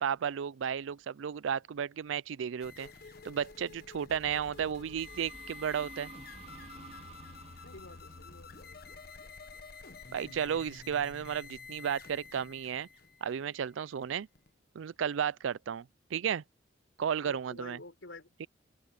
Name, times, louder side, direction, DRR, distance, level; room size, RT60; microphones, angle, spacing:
voice 1, 0.0-2.9 3.2-6.1 10.1-12.9 13.2-14.3 14.7-16.4 17.0-17.8 18.4-18.5, right 8 dB, 85° right, 0.4 m, -33 dB
sound 1, 2.6-14.5, left 4 dB, 55° left, 1.3 m, -50 dB
sound 2, 4.1-9.7, right 3 dB, 35° right, 3.9 m, -53 dB
voice 2, 7.6-8.8 17.2-18.3, left 2 dB, 85° left, 4.0 m, -49 dB
open air
head